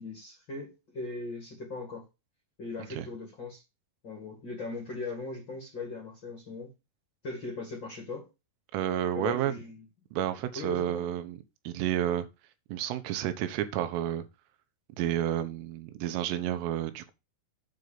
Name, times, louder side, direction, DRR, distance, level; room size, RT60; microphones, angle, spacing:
voice 1, 0.0-2.0 2.6-3.6 4.0-6.7 7.2-8.3 9.1-9.8 10.5-11.1, left 3 dB, 45° left, 1.5 m, -39 dB
voice 2, 8.7-9.5 10.1-11.4 11.7-12.3 12.7-14.3 15.0-17.1, right 11 dB, 90° right, 3.6 m, -30 dB
9.1 x 4.0 x 6.6 m
omnidirectional pair, 5.6 m